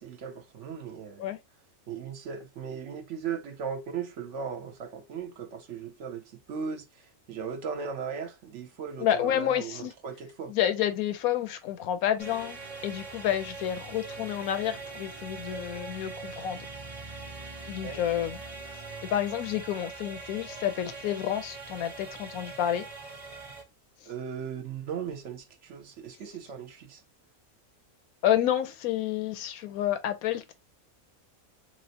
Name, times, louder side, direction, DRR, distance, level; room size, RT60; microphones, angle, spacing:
voice 1, 0.0-1.3 1.9-10.5 17.8-18.0 24.1-27.0, right 6 dB, 65° right, 0.9 m, -37 dB
voice 2, 9.0-9.9 10.5-16.7 17.7-18.4 19.0-22.9 28.2-30.5, left 11 dB, 80° left, 1.0 m, -29 dB
sound 1, 12.2-23.6, right 3 dB, 40° right, 0.5 m, -42 dB
3.1 x 3.0 x 2.7 m
omnidirectional pair, 1.5 m